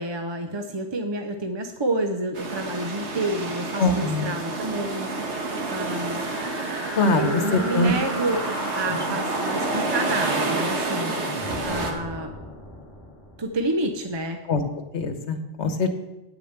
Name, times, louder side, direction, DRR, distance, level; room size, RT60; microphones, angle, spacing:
voice 1, 0.0-5.1 5.7-6.3 7.2-8.5 8.7-11.1 11.6-12.3 13.4-14.4, right 2 dB, 30° right, 5 dB, 0.6 m, -29 dB
sound 1, 2.3-11.9, right 3 dB, 75° right, 1.7 m, -29 dB
voice 2, 3.8-4.3 7.0-7.9 14.5-14.6 14.9-15.9, left 3 dB, 70° left, 7 dB, 1.3 m, -23 dB
sound 2, 5.9-13.8, left 1 dB, 20° left, 2.0 m, -36 dB
9.3 x 6.8 x 7.9 m, 1.0 s
omnidirectional pair, 1.2 m